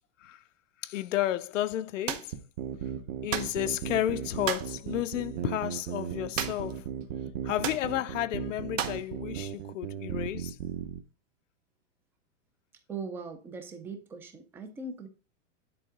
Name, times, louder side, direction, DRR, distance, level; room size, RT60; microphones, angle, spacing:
voice 1, 0.8-2.3 3.2-6.9 7.4-10.6, left 13 dB, 85° left, 0.7 m, -32 dB
sound 1, 2.1-2.3 3.3-3.6 4.4-4.7 6.4-6.8 7.0-7.1 7.6-7.9 8.8-9.1, right 9 dB, 85° right, 1.5 m, -33 dB
sound 2, 2.3-11.0, right 9 dB, 35° right, 0.9 m, -36 dB
voice 2, 12.9-15.1, right 4 dB, 5° right, 0.4 m, -40 dB
10.0 x 4.5 x 3.8 m
supercardioid pair, 165°, 37 cm